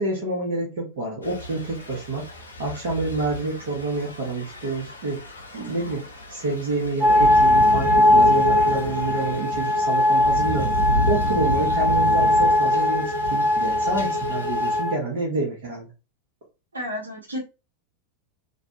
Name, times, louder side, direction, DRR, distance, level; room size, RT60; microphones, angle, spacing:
voice 1, 0.0-2.3 2.6-5.2 5.5-15.9, right 2 dB, 50° right, -4 dB, 1.1 m, -28 dB
Thunder / Rain, 1.2-14.8, equal, 80° left, 0.7 m, -32 dB
sound 1, 7.0-14.9, left 1 dB, 5° right, 0.7 m, -20 dB
voice 2, 16.7-17.4, left 1 dB, 75° right, 1 dB, 1.0 m, -31 dB
2.6 x 2.3 x 2.7 m, 0.29 s
figure-of-eight pair, 90°, 0 cm